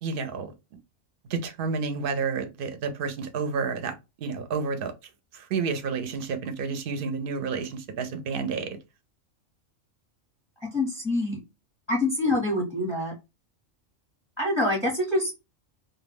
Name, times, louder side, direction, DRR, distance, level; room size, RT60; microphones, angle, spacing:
voice 1, 0.0-0.5 1.3-4.9 5.3-8.8, right 5 dB, 60° right, 0.7 m, -30 dB
voice 2, 10.7-11.4 11.9-13.1 14.4-15.3, left 1 dB, 5° right, 0.7 m, -25 dB
2.2 x 2.2 x 3.3 m
omnidirectional pair, 1.3 m